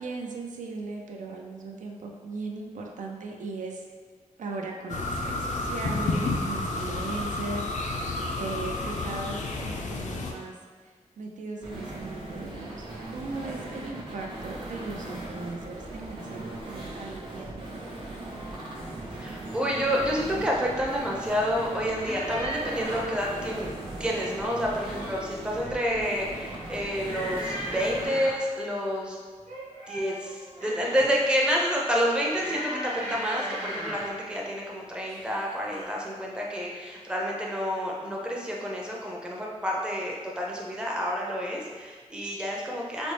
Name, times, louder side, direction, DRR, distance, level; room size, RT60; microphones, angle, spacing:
voice 1, 0.0-3.8 4.4-10.6 10.8-17.9, right 3 dB, 85° right, 1 dB, 0.4 m, -38 dB
sound 1, 4.9-10.3, left 2 dB, 70° left, 0.4 m, -30 dB
sound 2, 11.6-28.1, right 2 dB, 40° right, 0.7 m, -39 dB
voice 2, 19.2-23.7 24.0-29.2 29.9-43.1, equal, 5° right, -3 dB, 0.5 m, -29 dB
sound 3, 22.0-23.2 24.6-25.3 25.6-26.1 27.0-28.5 29.4-31.1 32.3-34.2 35.1-35.4 35.7-35.9, right 1 dB, 65° right, 1.0 m, -37 dB
4.0 x 2.0 x 3.2 m, 1.5 s
wide cardioid pair, 150°, 13 cm